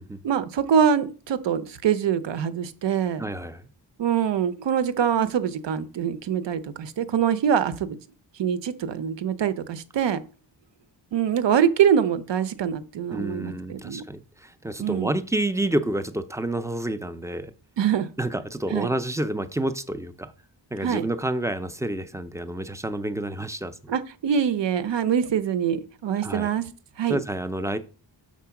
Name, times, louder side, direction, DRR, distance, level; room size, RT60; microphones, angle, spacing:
voice 1, 0.2-3.2 4.0-8.0 8.4-10.2 11.1-14.0 14.8-15.1 17.8-18.1 18.7-18.9 20.8-21.1 23.9-26.7 27.0-27.2, right 8 dB, 70° right, 0.8 m, -24 dB
voice 2, 3.2-3.7 13.1-17.5 18.2-20.3 20.7-23.9 26.2-26.5 27.1-27.8, right 1 dB, 5° right, 0.4 m, -29 dB
6.1 x 4.4 x 5.7 m
wide cardioid pair, 160°, 45 cm